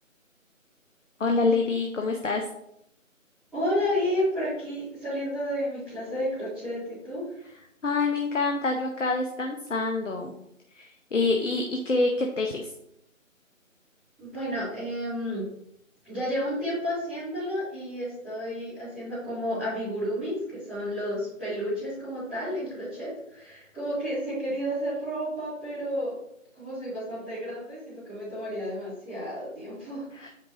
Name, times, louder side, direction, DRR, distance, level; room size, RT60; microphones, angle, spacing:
voice 1, 1.2-2.4 7.8-10.3 10.7-12.7 30.2-30.3, left 3 dB, 65° left, 2 dB, 0.8 m, -26 dB
voice 2, 3.5-7.4 14.2-15.4 16.0-26.1 26.5-30.0, equal, ahead, -24 dB, 2.2 m, -31 dB
8.6 x 3.6 x 3.1 m, 0.77 s
figure-of-eight pair, 160°, 40 cm